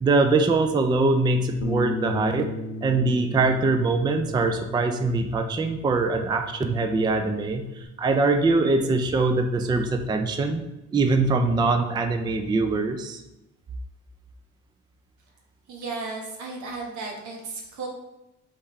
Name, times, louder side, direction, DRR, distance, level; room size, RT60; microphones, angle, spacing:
voice 1, 0.0-2.5 2.8-10.6 10.9-13.2, right 3 dB, 15° right, 6 dB, 0.3 m, -23 dB
Bass guitar, 1.6-7.9, left 2 dB, 75° left, 0.5 m, -37 dB
voice 2, 15.7-17.9, right 3 dB, 75° right, 0 dB, 1.2 m, -34 dB
3.6 x 3.5 x 4.1 m, 0.93 s
cardioid pair, 90°, 30 cm